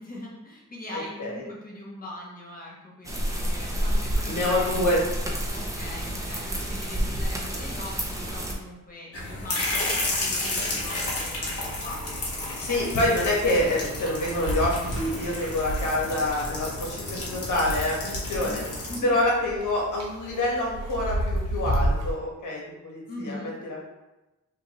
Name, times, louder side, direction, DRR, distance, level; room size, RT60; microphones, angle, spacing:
voice 1, 0.0-5.1 5.5-12.5 18.9-19.2 23.1-23.6, left 1 dB, 30° left, -4 dB, 1.1 m, -41 dB
voice 2, 0.9-1.4 4.3-5.0 12.6-18.6 19.0-23.9, left 1 dB, 75° left, -3 dB, 1.4 m, -26 dB
sound 1, 3.0-8.5, equal, 10° right, 0.6 m, -29 dB
sound 2, 9.1-19.0, left 2 dB, 50° left, 1.2 m, -32 dB
sound 3, 10.8-22.1, right 1 dB, 55° right, 1.0 m, -33 dB
5.1 x 2.8 x 3.0 m, 1.0 s
wide cardioid pair, 155°, 31 cm